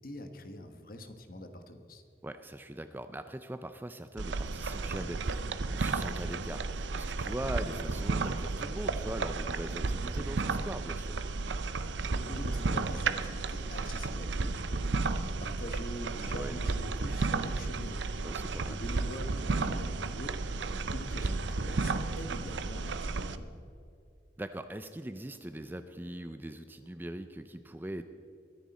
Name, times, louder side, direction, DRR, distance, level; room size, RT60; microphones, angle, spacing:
voice 1, 0.0-2.0 11.8-18.2 18.6-23.6, left 1 dB, 50° left, 7 dB, 1.2 m, -44 dB
voice 2, 2.2-11.2 16.3-16.6 18.2-18.8 24.4-28.0, right 1 dB, 10° right, 10 dB, 0.4 m, -41 dB
sound 1, 4.2-23.4, right 3 dB, 85° right, 0.7 m, -33 dB
22.5 x 10.0 x 4.2 m, 2.5 s
head